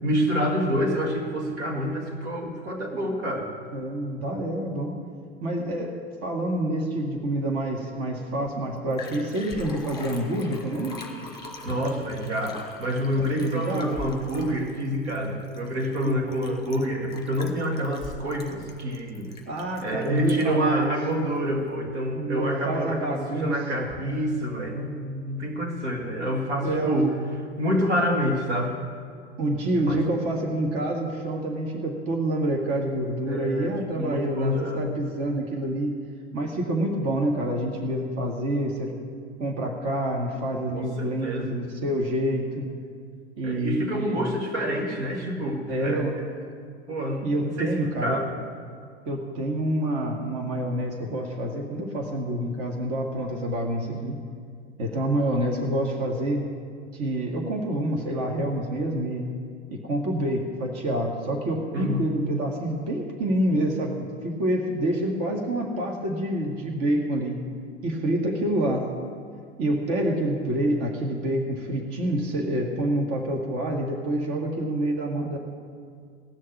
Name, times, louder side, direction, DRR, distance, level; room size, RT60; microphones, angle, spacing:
voice 1, 0.0-3.6 11.6-19.3 19.8-27.1 27.6-28.8 29.9-30.0 33.3-34.9 40.7-41.6 43.4-46.3 46.9-48.4 61.7-62.2, equal, 75° right, 0 dB, 2.0 m, -27 dB
voice 2, 3.7-4.9 5.4-5.9 6.2-11.0 13.1-13.9 16.0-16.2 19.5-20.9 22.1-23.9 26.6-27.0 29.4-35.9 36.3-38.9 39.4-42.7 43.4-44.2 45.7-46.1 47.2-48.2 49.1-54.2 54.8-56.4 56.9-59.2 59.7-67.4 67.8-68.8 69.6-75.4, right 1 dB, 45° right, 1 dB, 2.0 m, -27 dB
Liquid, 8.5-8.6 8.7-20.7 21.1-21.2, left 3 dB, 10° left, 2.2 m, -42 dB
17.0 x 6.5 x 9.3 m, 2.2 s
figure-of-eight pair, 85°, 34 cm